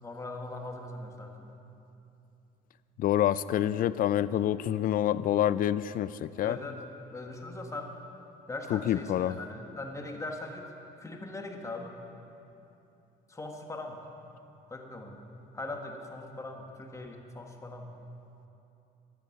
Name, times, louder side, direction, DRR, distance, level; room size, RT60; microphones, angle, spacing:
voice 1, 0.0-1.5 6.4-6.8 7.1-7.9 8.5-10.7 11.0-11.9 13.3-14.0 14.7-15.2 15.5-17.9, left 2 dB, 20° left, 3 dB, 1.5 m, -40 dB
voice 2, 3.0-6.6 8.7-9.4, left 11 dB, 55° left, 16 dB, 0.4 m, -27 dB
14.0 x 11.0 x 5.9 m, 2.8 s
cardioid pair, 110°, 17 cm